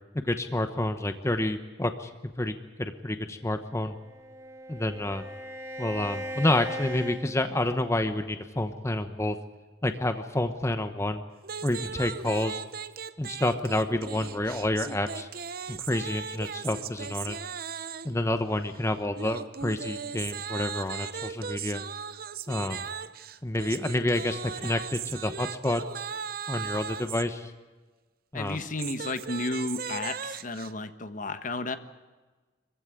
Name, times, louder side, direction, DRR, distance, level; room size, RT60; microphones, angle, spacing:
voice 1, 0.2-2.1 2.4-4.0 4.7-5.2 5.8-9.4 9.8-11.2 11.6-12.6 13.2-15.3 15.7-17.4 18.0-21.8 22.5-22.9 23.4-25.8 26.5-27.5 28.3-28.6, left 1 dB, 15° left, 8 dB, 1.0 m, -29 dB
Bowed string instrument, 3.7-8.1, equal, 20° right, 2.8 m, -39 dB
sound 1, 11.4-18.2 19.2-27.3 28.5-30.7, right 7 dB, 55° right, 0.8 m, -38 dB
voice 2, 28.3-31.8, left 2 dB, 50° left, 10 dB, 1.3 m, -33 dB
25.0 x 15.5 x 9.6 m, 1.3 s
head